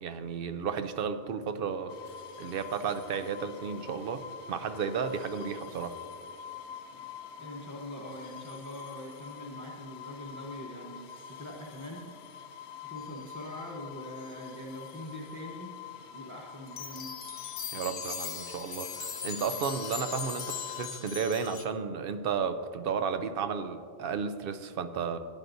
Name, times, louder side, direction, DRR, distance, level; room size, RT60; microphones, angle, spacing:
voice 1, 0.0-1.9 2.4-6.0 17.7-25.2, right 6 dB, 60° right, 10 dB, 0.8 m, -33 dB
sound 1, 1.9-20.9, left 8 dB, 80° left, 0.9 m, -46 dB
voice 2, 7.4-12.4 12.9-15.7 16.1-17.2, left 1 dB, 15° left, -2 dB, 0.9 m, -43 dB
sound 2, 16.7-21.6, left 7 dB, 50° left, 0.9 m, -39 dB
15.5 x 9.7 x 2.6 m, 2.3 s
omnidirectional pair, 1.1 m